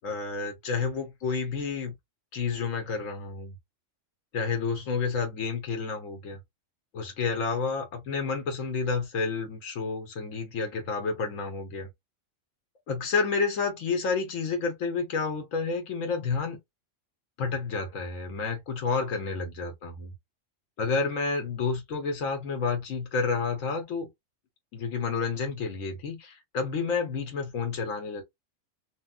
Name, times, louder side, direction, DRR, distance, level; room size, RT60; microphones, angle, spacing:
voice 1, 0.0-1.9 2.3-3.5 4.3-6.4 6.9-11.9 12.9-16.6 17.4-20.1 20.8-24.1 24.7-28.2, left 4 dB, 75° left, 1.3 m, -30 dB
2.9 x 2.5 x 2.3 m
omnidirectional pair, 1.4 m